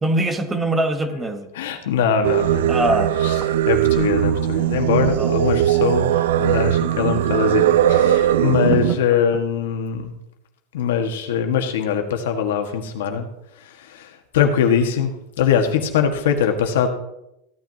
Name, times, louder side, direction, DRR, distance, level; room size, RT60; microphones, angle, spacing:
voice 1, 0.0-1.5 2.7-3.1 5.2-5.3 8.7-8.8, right 1 dB, 15° right, 7 dB, 1.2 m, -22 dB
voice 2, 1.5-2.8 3.2-3.3 3.7-10.2 10.7-13.3 13.6-16.9, left 7 dB, 85° left, 4 dB, 1.7 m, -22 dB
Singing, 2.2-9.0, right 11 dB, 85° right, 0.4 m, -19 dB
15.5 x 9.3 x 2.9 m, 0.86 s
supercardioid pair, 145°, 0 cm